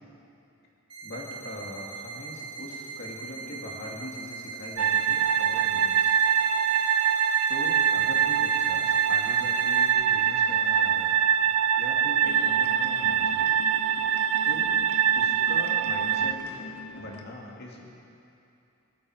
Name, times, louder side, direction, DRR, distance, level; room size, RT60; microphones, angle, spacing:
sound 1, 0.9-9.9, right 5 dB, 25° right, 3.0 m, -40 dB
voice 1, 1.0-6.1 7.5-11.2 11.8-13.6 14.4-14.7 15.2-16.4 16.9-17.8, left 1 dB, 50° left, -2 dB, 2.5 m, -41 dB
sound 2, 4.8-16.3, right 8 dB, 70° right, 0.4 m, -24 dB
sound 3, 12.2-17.2, left 1 dB, 75° left, 1.4 m, -43 dB
20.0 x 13.5 x 5.0 m, 2.7 s
head